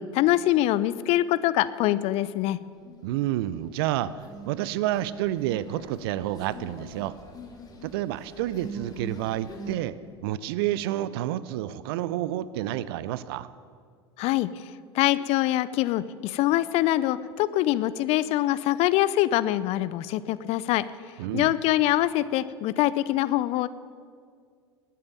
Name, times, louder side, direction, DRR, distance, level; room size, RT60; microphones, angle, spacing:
voice 1, 0.0-2.6 14.2-14.5 14.9-20.8 21.3-23.7, left 15 dB, 45° left, 16 dB, 0.6 m, -24 dB
sound 1, 2.8-3.4 3.7-9.8, right 1 dB, 25° left, 2.8 m, -43 dB
voice 2, 3.0-7.2 7.8-10.0 10.2-13.5 21.2-21.5, right 13 dB, 60° right, 17 dB, 0.6 m, -29 dB
19.5 x 8.6 x 7.0 m, 2.1 s
figure-of-eight pair, 80°, 14 cm